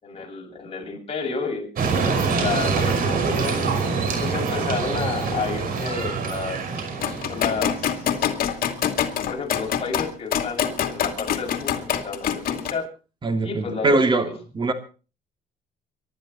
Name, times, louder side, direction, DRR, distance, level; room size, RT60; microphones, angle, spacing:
voice 1, 0.0-3.6 4.2-6.6 7.3-8.3 9.3-12.9 13.4-14.0 14.3-14.4, left 5 dB, 35° left, 1 dB, 7.1 m, -31 dB
sound 1, 1.8-8.0, right 4 dB, 60° right, 5.6 m, -25 dB
sound 2, 7.0-12.7, left 8 dB, 60° left, 2.5 m, -25 dB
voice 2, 13.2-14.7, right 2 dB, 30° right, 7 dB, 3.1 m, -22 dB
25.0 x 12.0 x 4.4 m, 0.36 s
cardioid pair, 110°, 17 cm